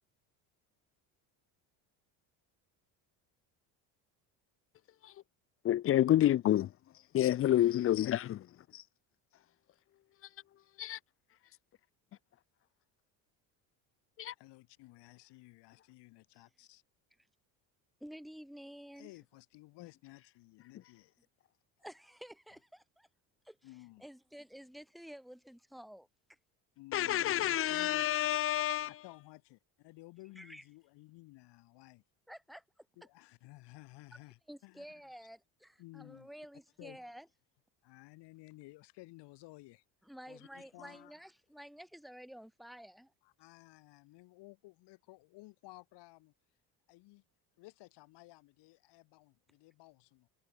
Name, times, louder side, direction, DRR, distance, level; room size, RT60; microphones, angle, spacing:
voice 1, 5.6-6.7 7.1-8.2 10.8-11.0 14.2-14.3 26.9-28.9, left 12 dB, 35° left, 0.4 m, -28 dB
voice 2, 14.4-16.8 18.9-21.1 23.6-24.1 26.8-28.1 28.8-32.0 33.0-34.8 35.8-36.3 36.8-37.0 37.8-39.8 40.3-41.1 43.2-46.3 46.9-47.2 47.6-50.3, left 21 dB, 75° left, 6.8 m, -55 dB
voice 3, 18.0-19.1 21.8-23.1 23.4-23.7 24.0-26.4 30.4-30.6 32.3-32.9 34.5-37.3 40.0-43.1, equal, ahead, 2.0 m, -51 dB
supercardioid pair, 100°, 42 cm